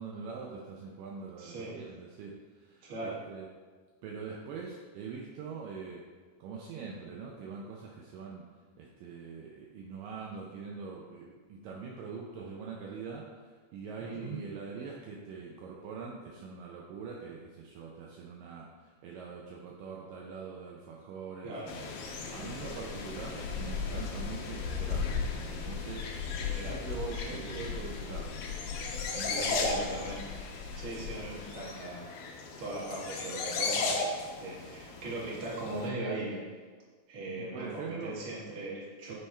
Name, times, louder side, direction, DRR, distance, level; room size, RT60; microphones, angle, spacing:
voice 1, 0.0-3.5 4.0-6.0 6.4-8.5 8.8-21.6 22.3-25.2 25.5-26.1 26.5-28.4 29.1-30.0 37.4-38.2 39.1-39.2, right 5 dB, 80° right, -2 dB, 2.1 m, -43 dB
voice 2, 1.4-1.7 2.8-3.2 14.0-14.4 21.4-21.7 26.3-26.8 27.1-27.4 29.1-30.2 30.7-32.1 32.6-36.4 37.1-39.1, right 2 dB, 50° right, -6 dB, 1.8 m, -39 dB
sound 1, 21.7-35.9, left 4 dB, 85° left, 2.7 m, -35 dB
9.6 x 3.5 x 4.3 m, 1.5 s
omnidirectional pair, 4.3 m